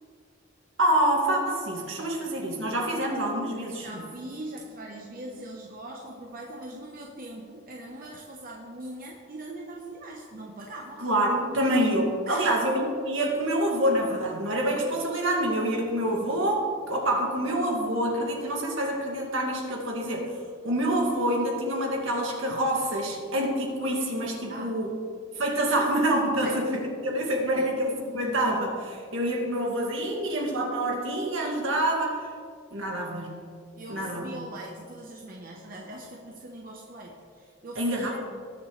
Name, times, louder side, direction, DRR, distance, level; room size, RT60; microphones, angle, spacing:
voice 1, 0.8-4.0 11.0-20.3 20.6-24.9 25.4-32.3 32.7-33.4 33.9-34.4 37.8-38.2, right 1 dB, 70° right, 0 dB, 2.1 m, -27 dB
voice 2, 3.8-11.0 12.3-12.5 24.5-24.7 26.4-26.6 27.5-27.7 33.8-38.2, right 1 dB, 45° right, -1 dB, 1.0 m, -41 dB
19.0 x 7.0 x 3.2 m, 2.2 s
head